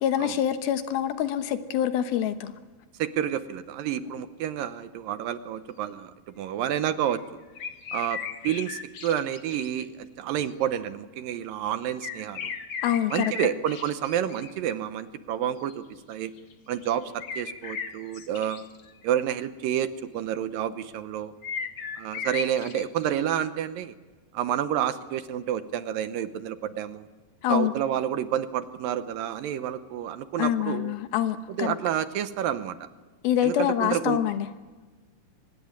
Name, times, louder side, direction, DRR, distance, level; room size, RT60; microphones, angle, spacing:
voice 1, 0.0-2.5 4.0-4.1 12.8-13.3 27.4-27.7 30.4-31.8 33.2-34.5, left 10 dB, 80° left, 2.9 m, -25 dB
voice 2, 3.0-7.2 7.9-12.5 13.1-16.3 16.7-18.6 19.0-21.3 22.0-23.9 24.3-27.1 27.5-30.9 31.5-32.9 33.4-34.2, right 10 dB, 75° right, 2.4 m, -29 dB
sound 1, 7.1-7.3 7.6-9.8 10.5-10.6 12.0-14.5 15.6-15.7 16.1-16.5 16.8-19.2 21.4-23.3, left 6 dB, 60° left, 1.3 m, -36 dB
24.0 x 19.5 x 9.5 m
omnidirectional pair, 4.4 m